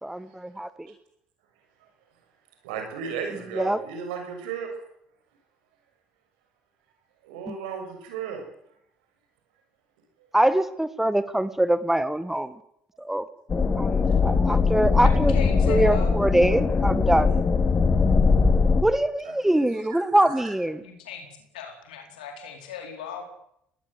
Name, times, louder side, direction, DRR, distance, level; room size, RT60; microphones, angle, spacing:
voice 1, 0.0-0.9 3.5-3.8 7.5-7.6 10.3-12.5 13.0-13.3 13.8-15.3 15.7-17.6 18.8-20.8, right 1 dB, 5° right, 14 dB, 1.6 m, -23 dB
voice 2, 2.6-4.7 7.2-8.4 14.0-14.1 19.2-19.6 19.9-20.4, right 7 dB, 85° right, 4 dB, 6.4 m, -35 dB
sound 1, 13.5-18.8, left 4 dB, 35° left, 3.0 m, -21 dB
voice 3, 15.3-16.1 20.8-21.3 21.5-23.2, left 7 dB, 90° left, 3 dB, 4.4 m, -36 dB
23.0 x 19.0 x 8.1 m, 0.75 s
hypercardioid pair, 60°, 4 cm